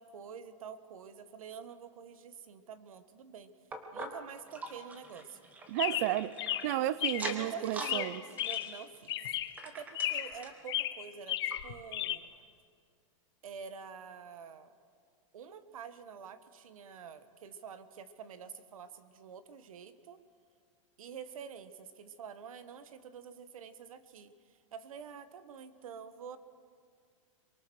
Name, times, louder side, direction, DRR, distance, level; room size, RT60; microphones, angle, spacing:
voice 1, 0.0-3.5 3.9-5.4 7.2-8.1 8.4-9.2 9.6-12.3 13.4-14.7 15.3-20.2 21.0-26.4, right 7 dB, 85° right, 12 dB, 1.5 m, -47 dB
sound 1, 3.7-6.7 7.1-8.0 8.3-10.6 11.1-11.2 11.5-11.6 12.2-12.3, right 2 dB, 10° right, 1.1 m, -44 dB
voice 2, 5.7-6.3 6.6-8.2, right 14 dB, 30° right, 18 dB, 0.5 m, -32 dB
Chirp tweet, 5.8-7.4 7.8-8.8 9.1-9.6 9.9-10.4 10.7-12.2, left 13 dB, 50° left, 0.8 m, -35 dB
23.0 x 22.5 x 6.4 m, 2.1 s
supercardioid pair, 175°, 17 cm